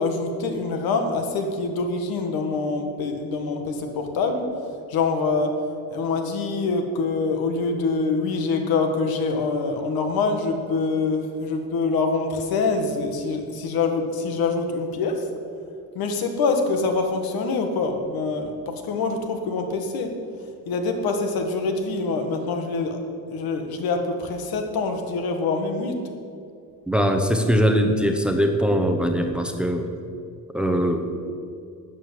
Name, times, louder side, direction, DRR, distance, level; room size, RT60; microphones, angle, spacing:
voice 1, 0.0-4.4 4.9-5.5 5.9-15.2 16.0-18.5 18.8-20.1 20.7-23.0 23.3-25.9, left 4 dB, 80° left, 5 dB, 1.9 m, -25 dB
voice 2, 26.9-29.9 30.5-31.0, equal, 5° right, 4 dB, 0.8 m, -21 dB
13.0 x 8.6 x 7.6 m, 2.4 s
cardioid pair, 170°, 36 cm